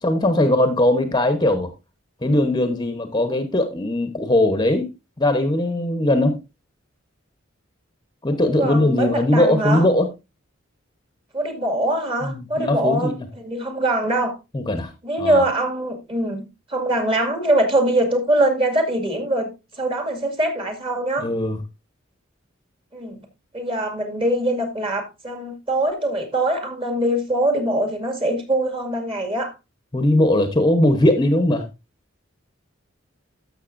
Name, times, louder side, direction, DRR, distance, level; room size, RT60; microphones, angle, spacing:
voice 1, 0.0-1.7 2.2-4.9 5.2-6.4 8.2-10.1 12.2-13.2 14.5-14.9 15.2-15.4 21.2-21.6 29.9-31.7, left 1 dB, 20° left, 1.0 m, -19 dB
voice 2, 8.4-9.9 11.3-14.3 15.0-16.4 16.7-21.3 22.9-23.3 23.5-29.5, right 1 dB, 25° right, 2.1 m, -23 dB
13.0 x 6.6 x 2.6 m
head